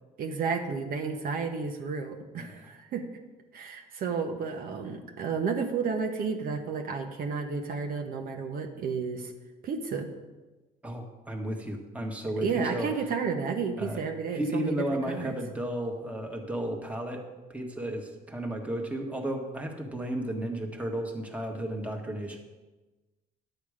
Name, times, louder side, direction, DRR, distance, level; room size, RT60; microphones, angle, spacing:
voice 1, 0.2-3.0 3.5-9.3 9.6-10.1 12.4-14.7 15.1-15.4, right 5 dB, 60° right, 3 dB, 1.1 m, -32 dB
voice 2, 2.4-2.7 10.8-12.9 13.8-14.0 14.3-17.2 17.5-22.4, right 1 dB, 10° right, 2 dB, 1.5 m, -33 dB
11.0 x 8.1 x 5.0 m, 1.2 s
cardioid pair, 110°, 17 cm